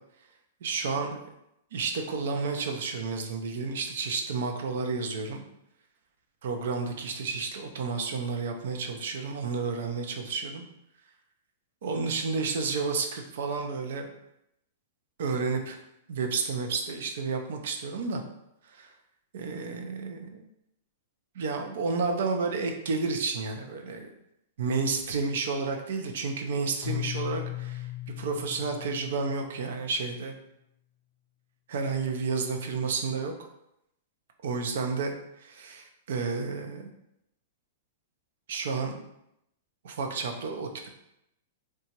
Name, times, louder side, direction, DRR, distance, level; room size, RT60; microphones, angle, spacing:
voice 1, 0.6-1.2 1.7-5.4 6.4-10.6 11.8-14.1 15.2-15.8 16.1-18.2 18.7-18.9 19.3-20.4 21.3-24.1 24.6-27.9 28.2-30.4 31.7-33.3 34.4-36.9 38.5-39.0 39.8-40.9, right 4 dB, 70° right, 4 dB, 0.4 m, -31 dB
Keyboard (musical), 26.8-29.8, left 15 dB, 50° left, 0.5 m, -37 dB
2.8 x 2.3 x 2.8 m, 0.81 s
hypercardioid pair, 115°, 0 cm